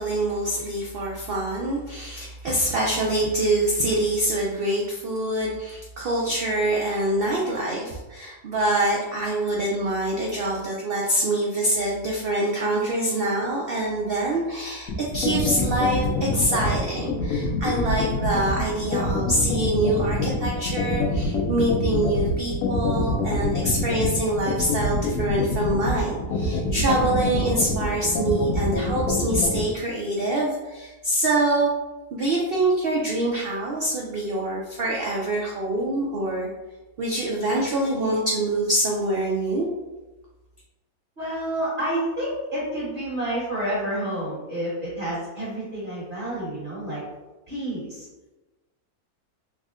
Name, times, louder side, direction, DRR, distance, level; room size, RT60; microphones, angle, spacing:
voice 1, 0.0-31.7 32.1-36.5 37.0-39.7, right 1 dB, 75° right, -3 dB, 0.5 m, -25 dB
sound 1, 14.9-29.6, left 3 dB, 80° left, 1.1 m, -25 dB
voice 2, 41.2-47.0 47.5-48.1, right 1 dB, 35° right, -9 dB, 1.4 m, -29 dB
3.5 x 2.1 x 3.6 m, 1.1 s
omnidirectional pair, 1.6 m